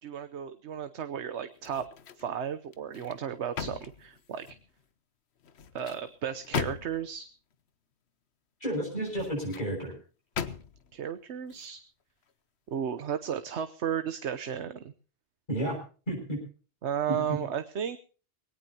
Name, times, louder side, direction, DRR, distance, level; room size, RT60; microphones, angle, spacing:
voice 1, 0.0-1.9 2.2-4.6 5.7-7.3 10.9-11.8 12.7-14.9 16.8-18.0, right 8 dB, 90° right, 11 dB, 1.2 m, -34 dB
sound 1, 1.6-2.3 2.7-4.7 5.4-7.2 8.9-9.7 10.3-10.9 11.4-11.6, left 7 dB, 75° left, 1.2 m, -38 dB
voice 2, 8.6-9.9 15.5-15.8 16.1-16.4 17.1-17.2, right 1 dB, 45° left, -2 dB, 7.1 m, -31 dB
21.5 x 18.0 x 2.9 m, 0.37 s
omnidirectional pair, 1.1 m